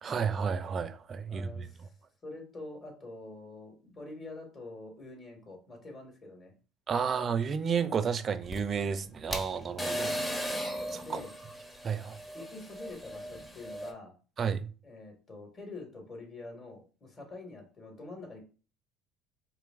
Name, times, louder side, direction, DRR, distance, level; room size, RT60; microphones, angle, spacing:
voice 1, 0.0-1.7 6.9-10.2 10.9-11.0 11.8-12.2 14.4-14.7, right 6 dB, 40° right, 0.4 m, -31 dB
voice 2, 1.2-1.9 2.2-6.5 11.0-11.3 12.3-14.1 14.8-18.4, left 2 dB, 40° left, 2.1 m, -46 dB
sound 1, 8.4-13.9, equal, 15° left, 0.9 m, -37 dB
4.7 x 3.0 x 2.5 m
hypercardioid pair, 70°, 0 cm